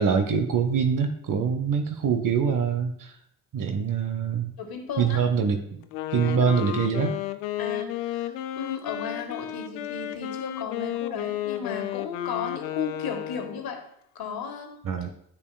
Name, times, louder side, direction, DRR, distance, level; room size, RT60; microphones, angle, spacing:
voice 1, 0.0-3.1 3.5-4.5 5.0-5.8 6.1-7.2 14.8-15.1, right 6 dB, 50° right, 7 dB, 0.9 m, -24 dB
voice 2, 4.6-5.2 6.2-6.6 7.6-13.8 14.1-14.8, left 6 dB, 55° left, 4 dB, 1.5 m, -35 dB
Wind instrument woodwind instrument, 5.8-13.7, left 13 dB, 80° left, 0.5 m, -33 dB
9.8 x 7.0 x 2.2 m, 0.73 s
hypercardioid pair, 45°, 43 cm